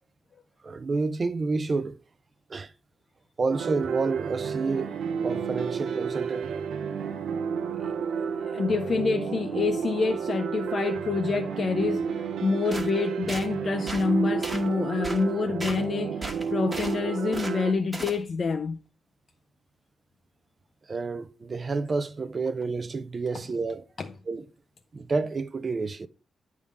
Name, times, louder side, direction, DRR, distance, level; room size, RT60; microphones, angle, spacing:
voice 1, 0.6-2.0 2.5-2.7 3.4-4.9 5.2-6.6 20.9-23.8 24.3-24.5 24.9-26.1, right 4 dB, 30° right, 0.4 m, -29 dB
sound 1, 3.5-17.7, right 6 dB, 85° right, 0.7 m, -31 dB
voice 2, 8.2-18.8 24.0-24.1, left 4 dB, 40° left, 0.4 m, -27 dB
sound 2, 12.7-12.9 13.3-13.5 13.9-14.1 14.4-14.7 15.0-15.2 15.6-15.8 16.2-17.0 17.3-17.6 17.9-18.2, right 2 dB, 15° right, 1.2 m, -35 dB
9.6 x 3.6 x 5.1 m
wide cardioid pair, 165°, 0 cm